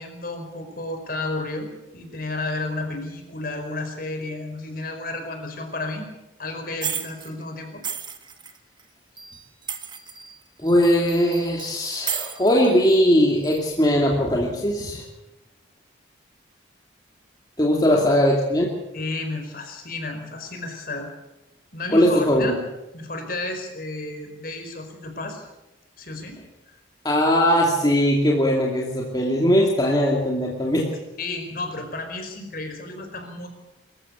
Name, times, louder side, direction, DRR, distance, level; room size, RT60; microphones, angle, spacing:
voice 1, 0.0-6.1 6.4-7.8 17.9-18.0 18.9-21.1 21.7-22.5 22.9-25.4 26.0-26.8 31.2-33.5, left 2 dB, 50° left, 5 dB, 4.8 m, -32 dB
sound 1, 6.8-7.3 7.8-8.8 9.2-10.4 10.7-13.0 13.4-13.6, right 7 dB, 25° right, 1.6 m, -33 dB
voice 2, 10.6-15.0 17.6-18.7 21.9-22.6 27.0-30.9, equal, 20° left, -2 dB, 2.6 m, -20 dB
24.5 x 14.5 x 8.2 m, 0.97 s
head